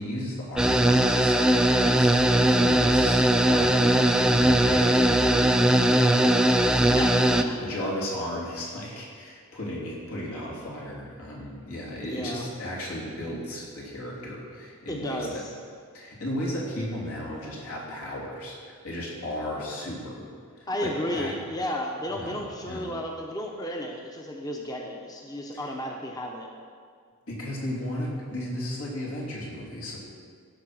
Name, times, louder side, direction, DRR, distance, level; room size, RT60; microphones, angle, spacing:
voice 1, 0.0-6.3 7.2-15.4 15.9-20.3 20.6-21.3 22.1-22.9 27.3-30.0, left 1 dB, 80° left, -4 dB, 3.2 m, -35 dB
sound 1, 0.6-7.4, right 1 dB, 5° right, 0.3 m, -20 dB
voice 2, 6.8-7.6 12.0-12.4 14.9-15.5 20.7-26.5, equal, 15° left, 1 dB, 0.7 m, -33 dB
15.5 x 5.9 x 6.1 m, 2.1 s
head